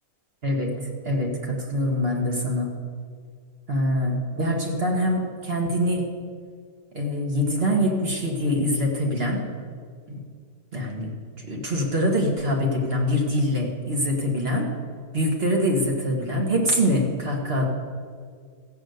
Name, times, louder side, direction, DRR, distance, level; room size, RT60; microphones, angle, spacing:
voice 1, 0.4-2.7 3.7-6.1 6.9-9.4 10.1-10.2 10.7-11.1 11.4-14.7 15.1-17.6, equal, 40° right, 0 dB, 1.9 m, -24 dB
15.0 x 6.7 x 8.0 m, 2.1 s
omnidirectional pair, 1.7 m